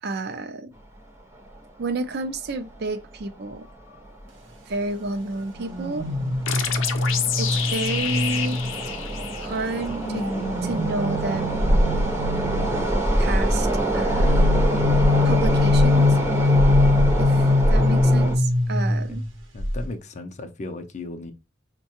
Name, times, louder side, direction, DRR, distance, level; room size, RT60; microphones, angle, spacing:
voice 1, 0.0-0.7 1.8-3.7 4.7-6.1 7.4-8.6 9.4-10.3 10.6-11.7 13.2-14.4 15.2-16.2 17.2-19.2, right 2 dB, 55° right, 0.5 m, -30 dB
sound 1, 1.4-1.5 1.8-1.9 2.7-2.9 3.2-3.3 3.9-4.3 4.7-18.4, right 1 dB, 15° right, 0.6 m, -24 dB
sound 2, 5.6-9.2 9.8-13.0 14.1-19.3 19.6-19.8, left 3 dB, 75° right, 0.8 m, -23 dB
sound 3, 6.5-9.9, left 8 dB, 90° left, 0.5 m, -28 dB
voice 2, 19.5-21.3, left 2 dB, 40° left, 0.5 m, -35 dB
5.4 x 2.2 x 2.9 m
head